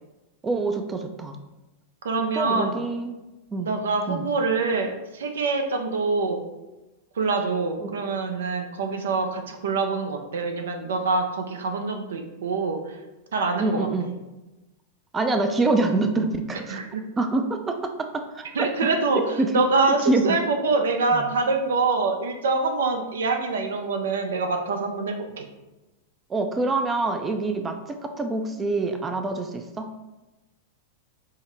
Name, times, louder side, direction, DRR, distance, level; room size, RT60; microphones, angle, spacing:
voice 1, 0.4-1.4 2.3-3.2 3.5-3.7 4.1-4.3 7.8-7.9 13.6-14.1 15.1-16.8 17.2-18.9 19.1-19.6 20.1-20.4 21.1-21.3 26.3-29.9, right 3 dB, 20° right, 6 dB, 0.4 m, -26 dB
voice 2, 2.0-2.7 3.6-6.4 7.2-13.0 13.3-13.9 16.7-17.0 18.6-19.2 19.5-25.5, right 3 dB, 75° right, 5 dB, 0.5 m, -25 dB
5.4 x 2.1 x 3.3 m, 1.1 s
hypercardioid pair, 100°, 0 cm